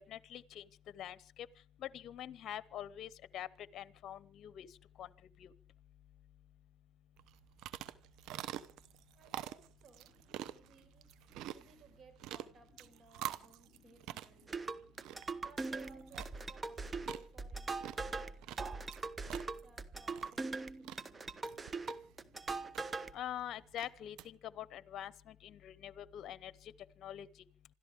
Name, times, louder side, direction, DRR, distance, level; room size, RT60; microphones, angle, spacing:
voice 1, 0.1-0.6 0.9-1.5 1.8-4.7 5.0-5.1 5.4-5.5 23.1-26.7 27.0-27.3, left 11 dB, 65° left, 18 dB, 0.8 m, -45 dB
sound 1, 7.2-24.3, right 12 dB, 80° right, 0.9 m, -48 dB
voice 2, 9.1-10.1 10.5-11.1 11.4-14.7 15.4-19.0 19.6-21.4, right 5 dB, 55° right, 6 dB, 5.1 m, -62 dB
sound 2, 14.5-23.1, right 3 dB, 30° right, 1.2 m, -41 dB
27.0 x 13.5 x 3.6 m, 0.40 s
supercardioid pair, 80°, 0 cm